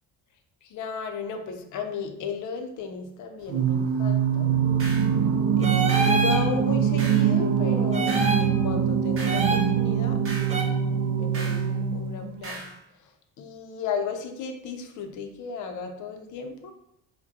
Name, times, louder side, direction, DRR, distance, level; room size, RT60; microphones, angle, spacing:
voice 1, 0.6-4.5 5.6-10.2 10.5-10.8 11.2-12.7 13.4-16.7, left 5 dB, 55° left, 6 dB, 0.6 m, -35 dB
Singing, 3.5-12.4, right 7 dB, 70° right, 0.5 m, -23 dB
sound 1, 4.8-5.1 5.9-6.2 7.0-7.3 8.1-8.4 9.2-9.5 10.3-10.6 11.3-11.7 12.4-12.8, right 2 dB, 40° right, 0.9 m, -38 dB
sound 2, 5.6-6.4 7.9-8.5 9.2-9.7 10.5-10.6, right 2 dB, 20° right, 0.5 m, -26 dB
4.9 x 2.2 x 2.6 m, 0.78 s
cardioid pair, 120°, 35 cm